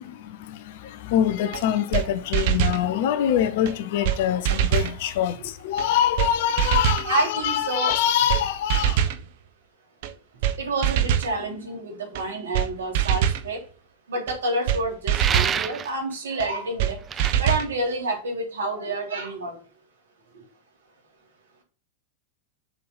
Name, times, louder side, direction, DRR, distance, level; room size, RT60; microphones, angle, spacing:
voice 1, 0.0-9.1, left 10 dB, 50° left, 0.9 m, -24 dB
sound 1, 1.5-1.6 1.9-2.1 2.3-2.8 3.7-3.8 4.0-4.2 4.4-4.9 5.8-5.9 6.2-6.3 6.6-7.1 7.9-8.0 8.3-8.4 8.7-9.2 10.0-10.1 10.4-10.6 10.8-11.3 12.1-12.2 12.5-12.7 12.9-13.4 14.3-14.4 14.7-14.8 15.1-15.6 16.4-16.5 16.8-16.9 17.2-17.7, right 10 dB, 50° right, 0.9 m, -23 dB
voice 2, 7.0-8.0 10.6-13.6 14.1-17.0 17.4-19.5, right 2 dB, 65° right, 3.6 m, -28 dB
sound 2, 15.1-15.9 17.1-17.3, right 7 dB, 25° right, 0.5 m, -26 dB
6.6 x 5.7 x 5.6 m
figure-of-eight pair, 90°, 0 cm